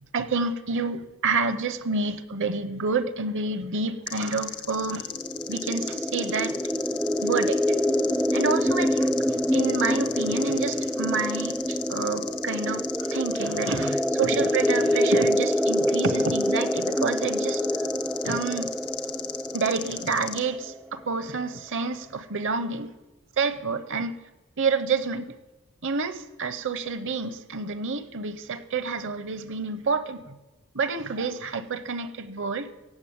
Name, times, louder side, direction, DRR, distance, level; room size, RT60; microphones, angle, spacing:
voice 1, 0.1-5.1 5.5-6.6 7.2-7.8 8.3-9.1 9.5-17.6 18.2-18.7 19.5-22.9 23.4-24.1 24.6-25.3 25.8-30.4 30.7-32.7, right 4 dB, 60° right, 12 dB, 0.8 m, -28 dB
sound 1, 4.1-20.4, left 10 dB, 85° left, 1.4 m, -37 dB
sound 2, 5.1-20.7, equal, ahead, 0.4 m, -26 dB
16.5 x 7.5 x 8.7 m, 1.1 s
head